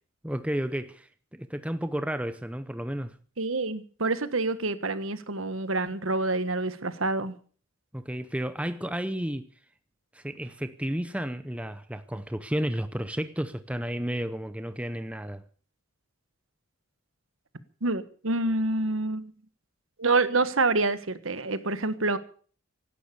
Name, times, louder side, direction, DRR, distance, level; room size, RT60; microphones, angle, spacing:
voice 1, 0.2-3.2 7.9-9.5 10.1-15.4, equal, 5° right, 0.7 m, -32 dB
voice 2, 3.4-7.3 17.8-19.3 20.0-22.2, right 3 dB, 70° right, 1.5 m, -27 dB
17.0 x 11.5 x 6.8 m
head